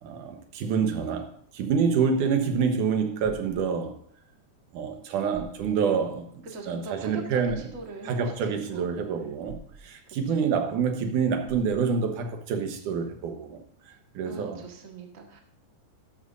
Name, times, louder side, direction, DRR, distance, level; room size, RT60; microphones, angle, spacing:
voice 1, 0.0-4.0 4.7-6.3 6.7-7.6 8.1-13.6 14.1-14.6, right 6 dB, 85° right, 2.7 m, -27 dB
sound 1, 3.2-3.6 4.9-5.0 5.3-5.7 7.4-7.8 9.5-9.8 11.5-11.8, right 4 dB, 55° right, 3.7 m, -45 dB
voice 2, 6.4-8.9 10.3-10.5 14.2-15.4, right 3 dB, 30° right, 1.7 m, -41 dB
13.0 x 12.5 x 2.6 m
omnidirectional pair, 3.5 m